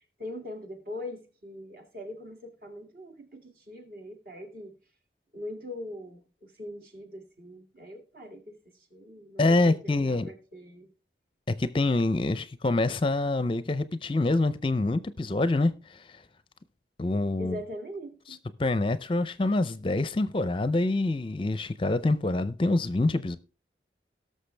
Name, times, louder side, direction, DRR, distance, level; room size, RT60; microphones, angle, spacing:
voice 1, 0.2-4.7 5.3-8.6 8.9-10.9 17.4-18.4, left 1 dB, 50° right, 2.2 m, -41 dB
voice 2, 9.4-10.3 11.5-16.2 17.0-17.6 18.6-23.4, left 2 dB, 30° left, 0.5 m, -26 dB
18.0 x 6.6 x 3.3 m
head